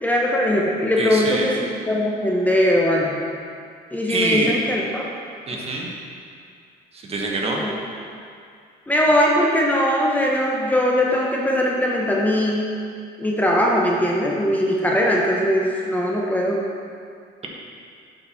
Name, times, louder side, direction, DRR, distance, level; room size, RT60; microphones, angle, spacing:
voice 1, 0.0-3.2 3.9-5.1 7.4-7.7 8.9-12.6 13.2-16.6, equal, 10° left, -3 dB, 0.9 m, -20 dB
voice 2, 1.0-1.5 4.1-4.5 5.5-5.9 6.9-7.6, right 2 dB, 35° right, -1 dB, 1.3 m, -25 dB
7.7 x 4.7 x 5.7 m, 2.3 s
cardioid pair, 110°, 17 cm